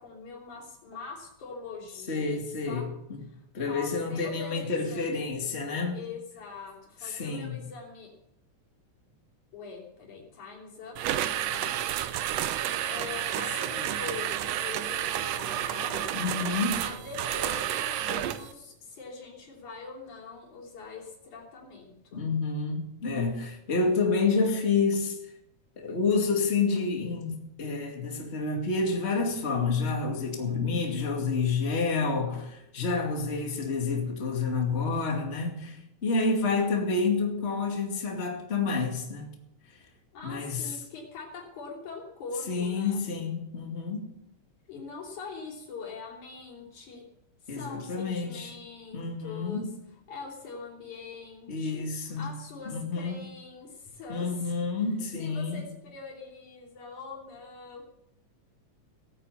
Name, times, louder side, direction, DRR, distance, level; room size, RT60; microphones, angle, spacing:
voice 1, 0.0-2.9 3.3-3.4 3.7-5.2 5.9-8.1 9.5-11.2 11.5-11.7 12.9-16.0 16.8-22.2 40.1-43.0 44.7-47.1 47.5-49.7 50.1-51.9 52.2-54.5 55.2-57.8, left 4 dB, 85° left, 4.6 m, -43 dB
voice 2, 2.1-3.2 3.5-6.0 7.0-7.6 11.5-11.6 16.1-16.8 22.1-25.2 25.8-39.3 40.2-40.7 42.5-44.1 47.5-48.5 48.9-49.8 51.5-52.3 52.7-53.2 54.1-55.7, left 4 dB, 25° left, 2.4 m, -29 dB
sound 1, 11.0-18.5, right 11 dB, 70° right, 1.8 m, -31 dB
17.5 x 9.1 x 6.8 m
omnidirectional pair, 3.3 m